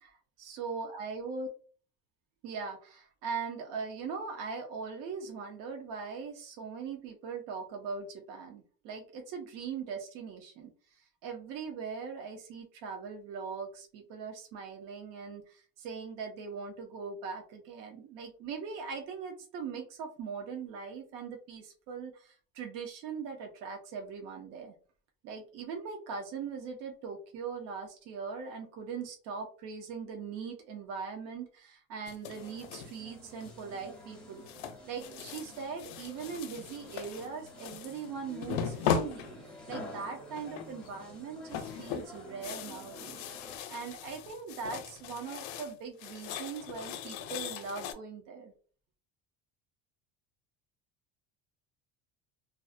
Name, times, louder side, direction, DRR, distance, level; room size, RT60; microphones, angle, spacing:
voice 1, 0.0-1.5 2.4-10.7 11.2-24.7 25.2-34.4 34.9-43.3 43.7-48.5, right 5 dB, 65° right, 3 dB, 0.6 m, -40 dB
sound 1, 32.1-33.0 33.4-33.8 34.5-38.1 38.4-39.8 40.4-40.9 41.2-45.7 46.0-47.9, left 8 dB, 80° left, 0.5 m, -38 dB
sound 2, 32.3-43.6, left 1 dB, 5° left, 0.4 m, -50 dB
2.4 x 2.0 x 2.4 m, 0.42 s
cardioid pair, 165°, 35 cm